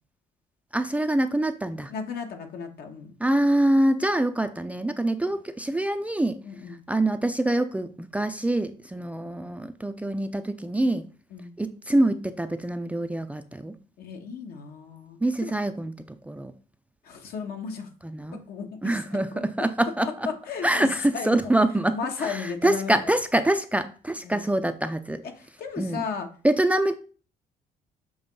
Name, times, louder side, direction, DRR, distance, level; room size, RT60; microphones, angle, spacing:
voice 1, 0.7-1.9 3.2-6.4 6.9-11.1 11.6-13.8 15.2-15.9 16.3-16.5 18.0-18.4 18.8-20.3 20.6-25.2 25.8-26.0 26.4-27.0, right 1 dB, 10° right, 8 dB, 0.4 m, -25 dB
voice 2, 1.9-3.1 6.4-6.8 11.3-11.6 14.0-15.5 17.0-17.9 18.3-19.2 20.2-20.9 21.1-21.5 21.9-23.1 24.2-24.5 25.4-26.3, left 6 dB, 70° left, 4 dB, 1.4 m, -35 dB
7.0 x 3.1 x 5.3 m, 0.39 s
cardioid pair, 110°, 17 cm